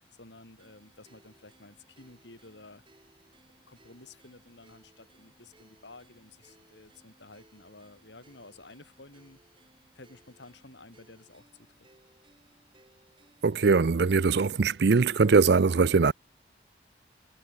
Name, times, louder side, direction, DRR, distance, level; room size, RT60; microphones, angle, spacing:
voice 1, 0.0-2.8 3.5-9.4 9.9-11.9, left 2 dB, 85° left, 3.9 m, -52 dB
sound 1, 0.6-15.0, right 1 dB, 30° right, 7.9 m, -63 dB
voice 2, 13.4-16.1, right 4 dB, 70° right, 0.5 m, -21 dB
head